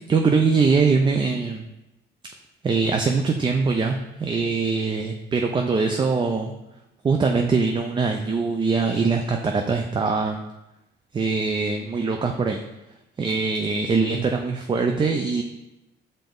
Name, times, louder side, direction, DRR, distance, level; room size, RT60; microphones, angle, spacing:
voice 1, 0.1-1.6 2.6-6.5 7.0-10.4 11.1-12.6 13.2-15.4, right 4 dB, 25° right, 4 dB, 0.3 m, -22 dB
5.7 x 2.6 x 3.5 m, 0.93 s
cardioid pair, 90°, 20 cm